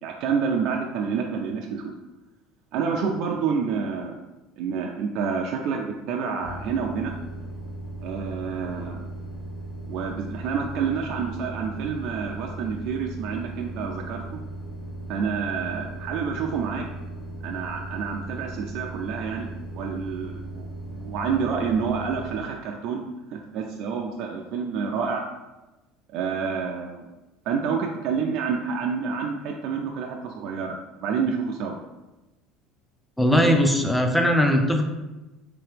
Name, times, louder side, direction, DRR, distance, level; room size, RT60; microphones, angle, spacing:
voice 1, 0.0-1.8 2.7-4.1 4.6-7.1 8.0-9.0 9.9-14.4 15.1-16.9 17.4-19.5 19.7-23.0 23.3-25.2 26.1-27.0 27.5-31.8, right 6 dB, 60° right, 1 dB, 0.3 m, -28 dB
sound 1, 6.4-22.4, right 2 dB, 85° left, 0.9 m, -37 dB
voice 2, 33.2-34.8, equal, 5° left, 4 dB, 0.4 m, -19 dB
3.3 x 2.9 x 3.3 m, 1.1 s
cardioid pair, 130°, 0 cm